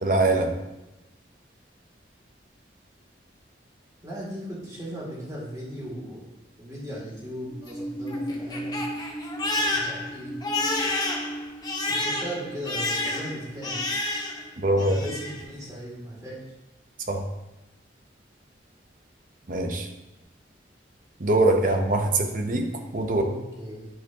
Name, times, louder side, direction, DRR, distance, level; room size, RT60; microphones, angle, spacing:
voice 1, 0.0-0.5 14.6-15.0 17.1-17.2 19.5-19.9 21.2-23.2, right 2 dB, 45° right, 4 dB, 0.8 m, -23 dB
voice 2, 4.0-6.3 6.6-8.8 9.7-10.4 11.9-13.8 14.8-16.4 23.1-23.9, equal, 20° right, -5 dB, 1.9 m, -37 dB
Crying sobbing, 7.5-14.5 14.8-15.4, left 1 dB, 20° left, 0.7 m, -30 dB
11.0 x 4.4 x 2.8 m, 0.99 s
head